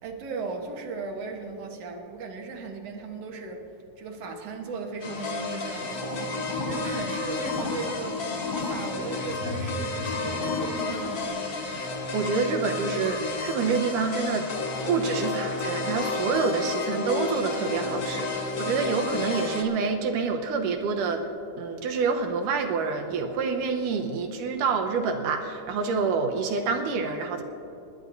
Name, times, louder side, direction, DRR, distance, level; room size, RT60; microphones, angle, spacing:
voice 1, 0.0-3.7 4.0-11.3, right 4 dB, 60° right, 1 dB, 2.1 m, -37 dB
sound 1, 5.0-19.6, left 3 dB, 75° left, 0.8 m, -31 dB
sound 2, 5.9-11.3, left 3 dB, 50° left, 1.5 m, -34 dB
voice 2, 11.7-14.5 14.9-21.3 21.6-27.4, right 5 dB, 85° right, 3 dB, 2.5 m, -27 dB
29.5 x 12.0 x 2.7 m, 2.9 s
omnidirectional pair, 3.6 m